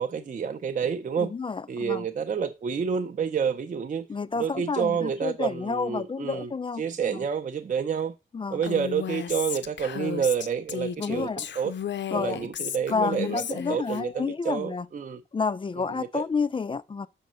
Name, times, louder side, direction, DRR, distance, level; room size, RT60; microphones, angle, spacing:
voice 1, 0.0-1.3 1.7-4.1 4.3-6.5 6.8-8.1 8.5-11.7 12.1-15.2 15.8-16.2, right 7 dB, 40° right, 0.6 m, -29 dB
voice 2, 1.2-2.0 4.1-7.2 8.3-8.6 11.0-11.4 12.1-12.5 12.9-14.9 15.3-17.1, left 4 dB, 25° left, 0.4 m, -30 dB
Female speech woman speaking, 8.6-14.0, left 8 dB, 60° left, 0.6 m, -34 dB
5.5 x 5.3 x 6.2 m
wide cardioid pair, 130°, 21 cm